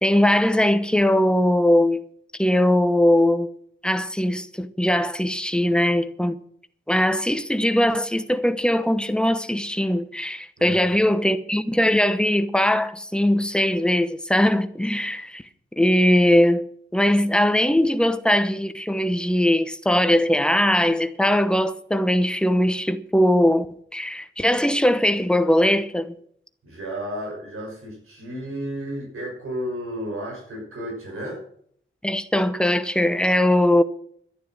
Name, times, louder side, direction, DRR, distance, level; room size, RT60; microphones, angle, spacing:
voice 1, 0.0-2.0 2.4-3.5 3.8-6.4 6.9-15.4 15.8-16.6 16.9-23.7 23.9-26.2 32.0-33.8, left 1 dB, 5° left, 1.0 m, -20 dB
voice 2, 10.6-11.0 26.6-31.4, equal, 85° right, 6.3 m, -33 dB
12.0 x 11.0 x 6.5 m
wide cardioid pair, 165°, 21 cm